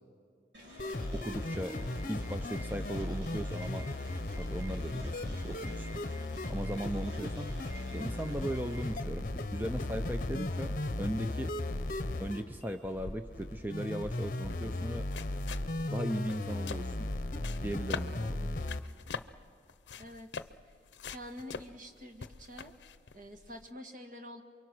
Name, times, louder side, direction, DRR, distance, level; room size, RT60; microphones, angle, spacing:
sound 1, 0.5-8.9, equal, 85° right, 5.6 m, -49 dB
sound 2, 0.8-18.8, left 2 dB, 45° left, 0.9 m, -36 dB
voice 1, 1.1-1.8 2.1-3.9 4.4-6.0 6.5-7.6 7.9-11.5 12.2-15.1 15.9-17.1 17.6-18.5, right 1 dB, 10° right, 6 dB, 0.6 m, -37 dB
sound 3, 12.8-23.7, left 5 dB, 80° left, 0.7 m, -45 dB
voice 2, 21.1-22.7 23.1-24.4, left 1 dB, 45° right, 5 dB, 1.7 m, -47 dB
28.5 x 23.5 x 6.2 m, 2.2 s
head